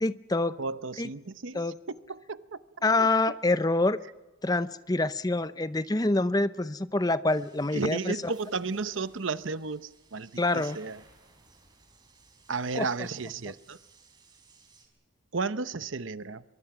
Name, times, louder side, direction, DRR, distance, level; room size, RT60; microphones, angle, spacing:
voice 1, 0.0-0.6 1.0-1.1 1.5-1.7 2.8-4.0 4.4-8.3 10.4-10.8 12.7-12.9, left 2 dB, 20° left, 14 dB, 0.6 m, -26 dB
voice 2, 0.6-2.6 3.0-3.1 7.7-11.0 12.5-13.8 15.3-16.4, right 4 dB, 75° right, 14 dB, 0.9 m, -33 dB
sound 1, 7.3-14.9, right 4 dB, 20° right, 4.2 m, -60 dB
24.0 x 22.5 x 6.0 m, 1.1 s
head